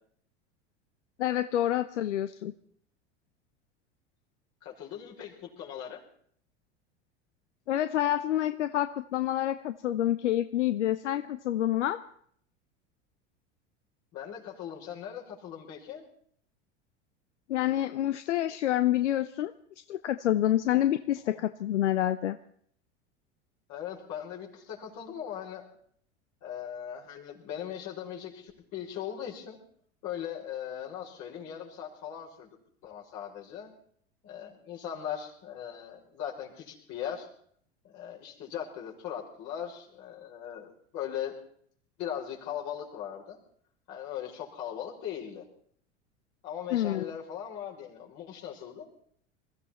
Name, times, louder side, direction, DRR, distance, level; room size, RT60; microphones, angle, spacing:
voice 1, 1.2-2.5 7.7-12.0 17.5-19.5 19.9-22.4 46.7-47.1, left 12 dB, 85° left, 11 dB, 0.7 m, -28 dB
voice 2, 4.6-6.0 14.1-16.1 21.2-21.4 23.7-25.6 26.4-29.6 30.0-32.5 32.8-33.7 34.2-37.3 37.8-41.3 42.0-43.4 43.9-45.4 46.4-48.9, left 9 dB, 55° left, -1 dB, 5.2 m, -39 dB
21.5 x 15.0 x 4.3 m, 0.62 s
hypercardioid pair, 90°, 35 cm